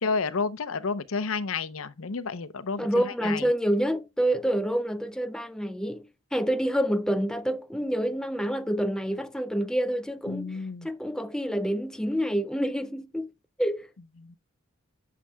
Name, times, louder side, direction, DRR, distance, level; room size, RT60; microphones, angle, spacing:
voice 1, 0.0-3.5 10.3-10.9 14.2-14.4, left 4 dB, 80° left, 0.7 m, -31 dB
voice 2, 2.8-13.3 13.6-13.9, equal, 5° left, 0.3 m, -28 dB
11.0 x 6.8 x 2.3 m
head